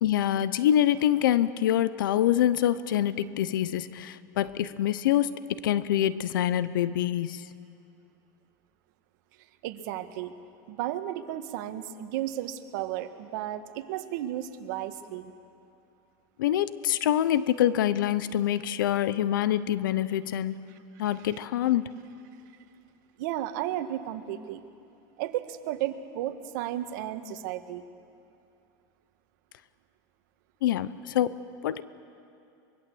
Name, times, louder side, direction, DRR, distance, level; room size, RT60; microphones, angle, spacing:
voice 1, 0.0-7.4 16.4-20.7 21.0-21.9 30.6-31.3 31.6-31.8, left 11 dB, 85° left, 16 dB, 0.8 m, -25 dB
voice 2, 9.6-10.3 10.7-15.3 21.2-21.3 23.2-24.6 25.2-27.8, right 12 dB, 70° right, 8 dB, 1.6 m, -33 dB
24.0 x 22.5 x 7.9 m, 2.6 s
supercardioid pair, 115°, 11 cm